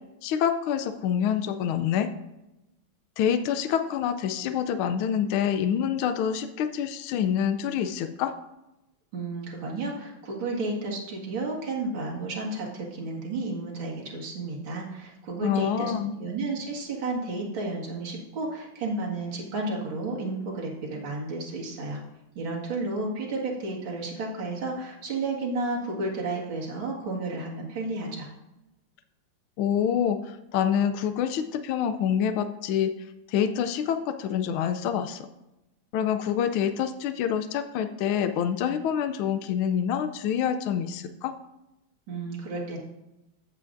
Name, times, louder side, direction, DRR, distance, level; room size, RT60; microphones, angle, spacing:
voice 1, 0.2-2.1 3.2-8.3 15.4-16.1 29.6-32.9 33.3-35.3 35.9-41.3, left 8 dB, 85° left, 9 dB, 1.4 m, -26 dB
voice 2, 9.1-15.9 16.2-22.0 22.4-28.3 42.1-42.8, right 2 dB, 70° right, -2 dB, 2.6 m, -32 dB
14.0 x 7.6 x 2.5 m, 0.94 s
omnidirectional pair, 2.2 m